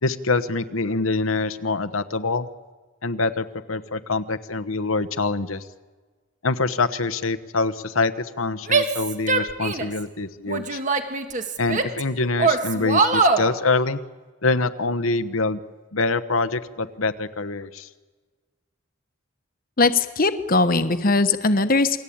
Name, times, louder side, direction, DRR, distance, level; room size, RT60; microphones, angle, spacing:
voice 1, 0.0-2.5 3.0-5.6 6.4-10.8 11.6-14.0 14.4-15.6 15.9-17.9, left 3 dB, 90° left, 10 dB, 1.2 m, -25 dB
Female speech woman speaking / Yell, 8.7-10.0 10.5-12.0 12.4-13.5, right 4 dB, 40° right, 1.9 m, -22 dB
voice 2, 19.8-22.0, left 3 dB, 45° left, 10 dB, 1.2 m, -20 dB
28.5 x 21.0 x 8.8 m, 1.4 s
head